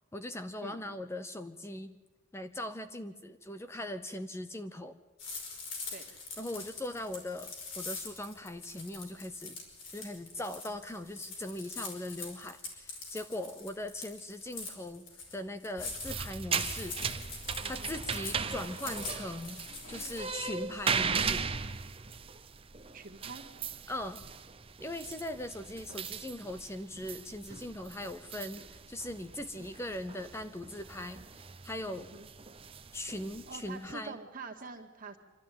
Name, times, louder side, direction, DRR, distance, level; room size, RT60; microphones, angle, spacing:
voice 1, 0.1-2.0 2.3-5.0 6.4-9.6 9.9-15.0 15.3-16.9 17.6-19.6 19.9-21.5 23.9-24.2 24.8-32.1 32.9-34.2, left 1 dB, 15° left, 10 dB, 0.6 m, -40 dB
sound 1, 5.2-21.4, left 4 dB, 65° left, 5.3 m, -44 dB
sound 2, 15.8-33.9, right 6 dB, 30° right, 0.7 m, -38 dB
voice 2, 17.6-17.9 22.9-23.4 32.0-32.3 33.5-35.2, right 4 dB, 45° right, 2 dB, 2.0 m, -45 dB
26.0 x 13.0 x 9.3 m, 1.2 s
head